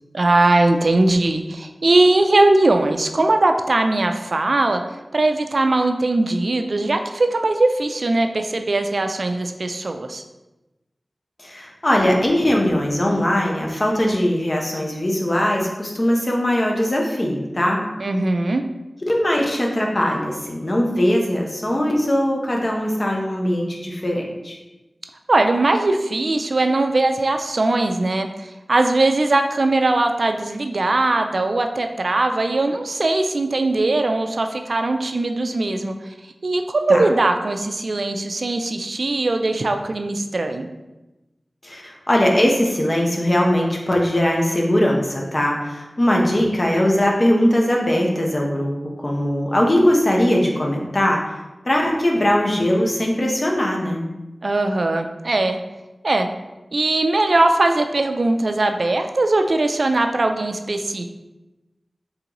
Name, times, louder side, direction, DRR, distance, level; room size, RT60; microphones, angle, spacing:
voice 1, 0.1-4.8 5.1-10.2 18.0-18.6 25.3-35.9 36.4-40.7 54.4-55.6 56.0-56.3 56.7-61.1, right 2 dB, 65° right, 6 dB, 0.3 m, -20 dB
voice 2, 11.4-17.8 19.1-24.6 36.9-37.0 41.6-51.2 51.7-54.0, left 1 dB, 40° left, 0 dB, 0.8 m, -20 dB
3.8 x 3.7 x 2.9 m, 1.0 s
wide cardioid pair, 55°, 0 cm